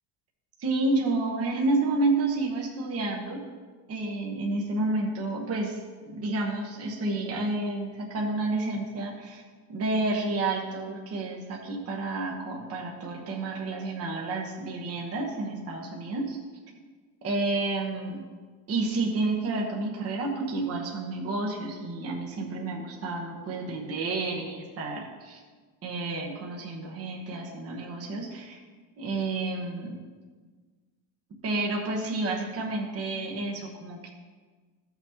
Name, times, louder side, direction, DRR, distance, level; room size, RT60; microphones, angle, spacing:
voice 1, 0.6-3.4 3.9-9.4 9.7-16.4 17.2-18.2 18.7-25.4 25.8-28.6 29.0-30.0 31.4-34.1, right 2 dB, 30° right, -1 dB, 1.1 m, -30 dB
14.5 x 6.0 x 2.9 m, 1.5 s
cardioid pair, 160°, 46 cm